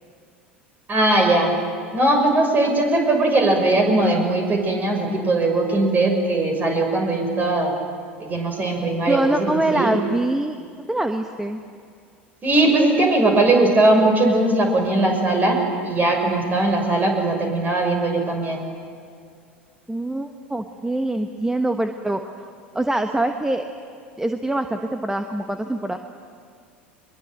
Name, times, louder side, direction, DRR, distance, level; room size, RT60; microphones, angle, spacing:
voice 1, 0.9-1.5 1.9-7.7 8.2-9.9 12.4-18.6, right 2 dB, 30° right, 3 dB, 6.8 m, -19 dB
voice 2, 9.1-10.6 10.9-11.6 19.9-22.5 22.7-23.7 24.2-26.0, right 1 dB, 10° right, 6 dB, 1.3 m, -24 dB
24.0 x 22.5 x 9.2 m, 2.3 s
figure-of-eight pair, 75°, 6 cm